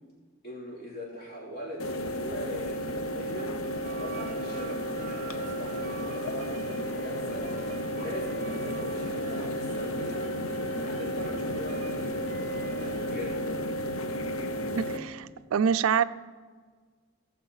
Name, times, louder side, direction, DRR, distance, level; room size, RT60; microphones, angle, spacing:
voice 1, 0.4-3.6 4.0-7.5 7.9-10.4 10.8-13.6, equal, 55° left, -4 dB, 3.4 m, -41 dB
sound 1, 1.8-15.0, equal, 85° left, 0.7 m, -33 dB
sound 2, 3.6-13.3, right 4 dB, 35° right, 0.6 m, -45 dB
voice 2, 14.7-16.0, right 7 dB, 85° right, 15 dB, 0.4 m, -26 dB
16.5 x 7.0 x 4.0 m, 1.5 s
head